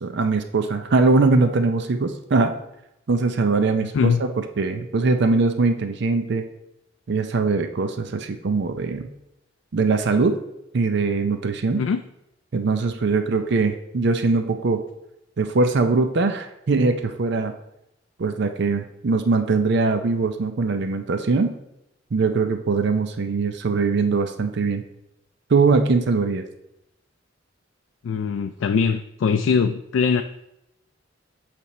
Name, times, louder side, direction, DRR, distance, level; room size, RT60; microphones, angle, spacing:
voice 1, 0.0-2.5 3.1-4.3 4.6-6.4 7.1-9.1 9.7-10.3 10.7-11.8 12.5-14.8 15.4-17.5 18.2-21.5 22.1-24.8 25.5-26.4, right 3 dB, 60° right, 7 dB, 0.5 m, -21 dB
voice 2, 28.0-30.2, left 5 dB, 85° left, 8 dB, 0.3 m, -21 dB
8.3 x 3.4 x 4.2 m, 0.85 s
head